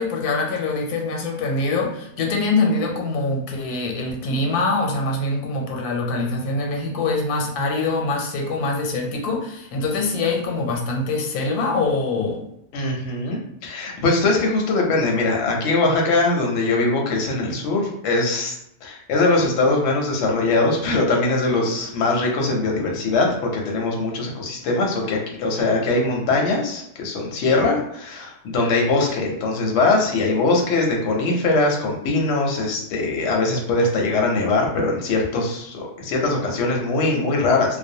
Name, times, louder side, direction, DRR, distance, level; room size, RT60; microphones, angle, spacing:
voice 1, 0.0-12.4, left 3 dB, 90° left, 1 dB, 1.1 m, -24 dB
voice 2, 12.7-18.6 18.8-37.8, left 3 dB, 65° left, 0 dB, 0.7 m, -21 dB
2.5 x 2.1 x 2.6 m, 0.78 s
omnidirectional pair, 1.6 m